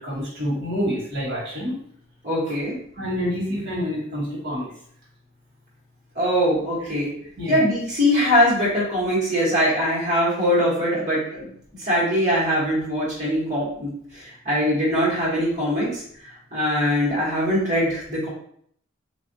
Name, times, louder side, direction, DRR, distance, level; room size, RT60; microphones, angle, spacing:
voice 1, 0.0-1.8 2.9-4.7 6.8-6.9 7.4-7.6, equal, 55° right, -7 dB, 1.3 m, -27 dB
voice 2, 2.2-2.8 6.1-7.1 7.5-11.5 11.8-16.0 16.5-18.3, equal, 35° right, -7 dB, 1.3 m, -22 dB
3.4 x 2.6 x 2.7 m, 0.65 s
head